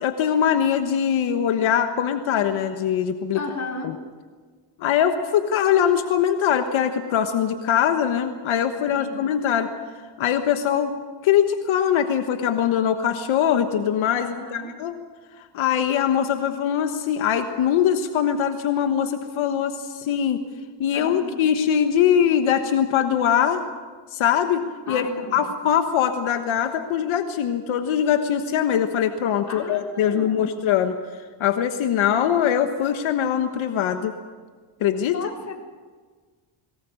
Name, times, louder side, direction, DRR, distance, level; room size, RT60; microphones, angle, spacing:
voice 1, 0.0-3.4 3.8-3.9 4.8-9.7 10.2-10.9 11.2-14.9 15.5-20.4 20.8-23.6 24.1-31.0 31.4-34.2 34.8-35.2, left 9 dB, 85° left, 7 dB, 1.3 m, -22 dB
voice 2, 3.3-3.9 8.9-9.2 14.2-14.7 20.9-21.4 24.9-25.5 29.5-30.6 35.1-35.5, left 3 dB, 35° left, 1 dB, 3.9 m, -35 dB
22.0 x 19.5 x 6.5 m, 1.5 s
cardioid pair, 120°, 46 cm